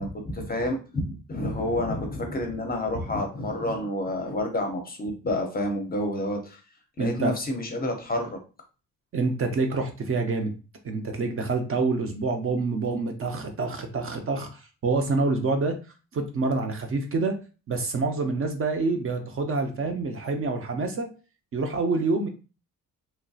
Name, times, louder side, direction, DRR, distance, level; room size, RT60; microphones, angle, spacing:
voice 1, 0.0-6.6 7.0-8.4, left 1 dB, 25° left, 4 dB, 0.5 m, -29 dB
voice 2, 7.0-7.3 9.1-10.5 10.8-15.8 16.1-17.4 17.7-21.1 21.5-22.3, right 3 dB, 40° right, 5 dB, 0.5 m, -27 dB
3.0 x 2.6 x 2.3 m, 0.34 s
cardioid pair, 140°, 34 cm